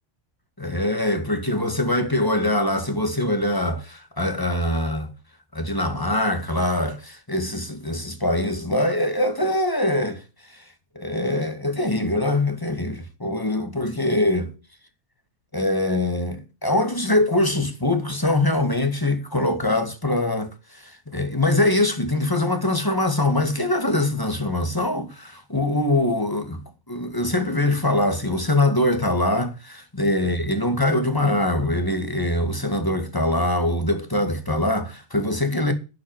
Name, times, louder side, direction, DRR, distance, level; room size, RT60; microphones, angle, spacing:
voice 1, 0.6-5.1 5.5-10.2 10.5-10.6 11.0-14.5 15.5-26.6 26.9-35.7, left 1 dB, 15° left, 2.0 m, -23 dB
11.5 x 6.3 x 9.0 m
omnidirectional pair, 1.3 m